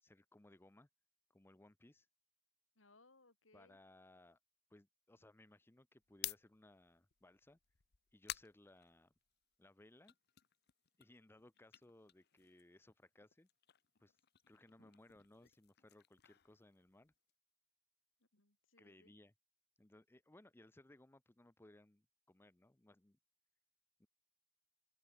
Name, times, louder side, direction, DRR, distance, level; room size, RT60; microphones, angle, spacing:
voice 1, 0.0-0.9 1.3-2.1 3.5-4.4 4.7-7.6 8.1-9.1 9.6-10.1 11.0-13.5 14.0-14.2 14.5-17.1 18.8-19.3 19.8-23.2 24.0-24.1, left 1 dB, 10° left, 0.6 m, -64 dB
voice 2, 2.8-3.8 18.3-19.1, left 3 dB, 85° left, 4.0 m, -68 dB
sound 1, 6.0-9.5 9.9-12.9 13.2-17.3, left 13 dB, 55° left, 0.9 m, -53 dB
open air
head